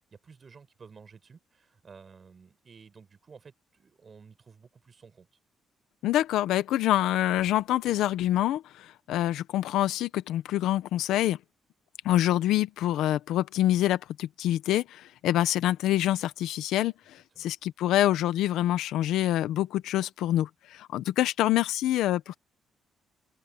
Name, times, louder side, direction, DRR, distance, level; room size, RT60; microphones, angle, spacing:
voice 1, 0.1-5.3 17.4-17.5, right 5 dB, 40° right, 5.3 m, -53 dB
voice 2, 6.0-11.4 12.0-22.3, left 13 dB, 85° left, 1.0 m, -26 dB
open air
cardioid pair, 90°, 0 cm